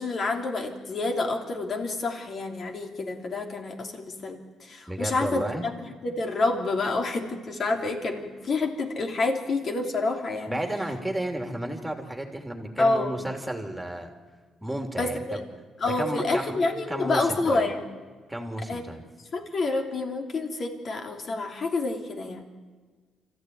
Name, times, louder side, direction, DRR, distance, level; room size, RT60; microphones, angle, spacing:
voice 1, 0.0-10.6 12.8-13.2 15.0-15.4 15.8-17.8 18.7-18.8 19.3-22.4, left 3 dB, 50° left, 3 dB, 3.1 m, -28 dB
voice 2, 4.9-5.6 10.5-14.1 14.6-15.4 15.8-16.5 16.9-17.7 18.3-19.0, right 1 dB, 5° right, 3 dB, 3.2 m, -32 dB
25.0 x 15.0 x 9.5 m, 1.5 s
cardioid pair, 90°, 0 cm